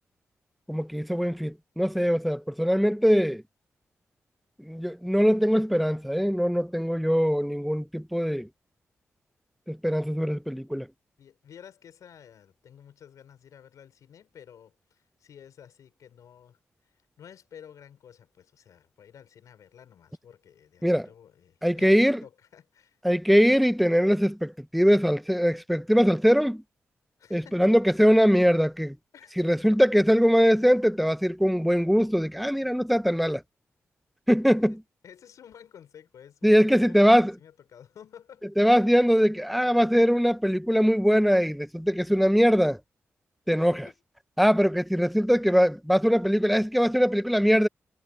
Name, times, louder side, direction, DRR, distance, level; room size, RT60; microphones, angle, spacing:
voice 1, 0.7-3.4 4.6-8.5 9.7-10.9 20.8-21.1 21.6-22.2 23.0-26.6 27.3-29.0 29.4-33.4 34.3-34.8 36.4-37.3 38.6-42.8 43.5-43.9 44.4-47.7, equal, ahead, 1.1 m, -22 dB
voice 2, 11.2-16.6 17.2-23.0 27.2-27.7 28.1-28.2 29.1-29.6 34.7-34.8 35.0-38.9 43.5-44.0, left 8 dB, 80° left, 5.2 m, -51 dB
supercardioid pair, 45°, 6 cm